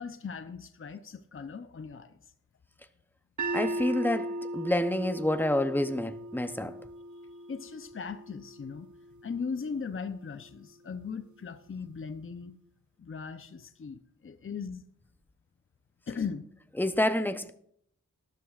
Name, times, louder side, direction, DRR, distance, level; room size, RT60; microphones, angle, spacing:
voice 1, 0.0-2.2 7.5-8.9 9.2-12.5 13.0-14.8 16.1-16.4, left 5 dB, 45° left, 0.7 m, -38 dB
sound 1, 3.4-9.5, right 1 dB, 75° right, 0.9 m, -38 dB
voice 2, 3.5-4.3 4.5-6.7 16.8-17.5, left 1 dB, 5° left, 0.8 m, -28 dB
19.0 x 12.5 x 2.5 m
wide cardioid pair, 65°, 30 cm